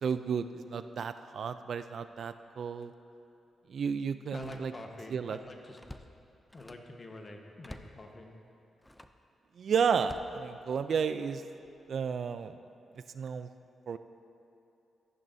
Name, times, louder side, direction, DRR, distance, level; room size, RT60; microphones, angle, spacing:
voice 1, 0.0-2.9 3.7-4.7 5.1-5.4 9.6-11.4 11.9-12.5 13.1-13.5 13.9-14.0, right 6 dB, 65° right, 11 dB, 0.3 m, -32 dB
Slam, 2.8-2.9 4.3-5.1 5.4-7.0 7.6-8.0 8.8-9.2 10.0-11.0 11.6-11.9, left 1 dB, 10° left, 0.5 m, -51 dB
voice 2, 4.3-5.8 6.5-8.3, left 2 dB, 35° left, 2 dB, 1.2 m, -46 dB
14.0 x 10.5 x 2.7 m, 2.8 s
cardioid pair, 80°, 0 cm